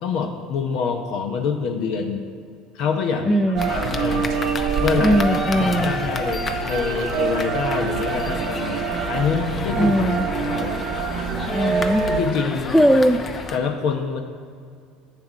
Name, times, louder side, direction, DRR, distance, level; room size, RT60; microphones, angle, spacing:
voice 1, 0.0-2.2 2.7-3.4 3.7-4.3 4.8-5.2 5.5-9.9 10.4-10.8 12.0-12.8 13.5-14.2, left 6 dB, 65° left, 4 dB, 0.8 m, -26 dB
voice 2, 3.2-3.8 5.0-5.9 9.7-10.3 11.5-12.0 12.7-13.2, equal, ahead, 3 dB, 0.4 m, -19 dB
sound 1, 3.5-12.2, right 5 dB, 60° right, 0.7 m, -26 dB
sound 2, 3.6-13.6, left 4 dB, 35° left, 0.7 m, -31 dB
7.6 x 7.1 x 5.0 m, 2.2 s
supercardioid pair, 95°, 0 cm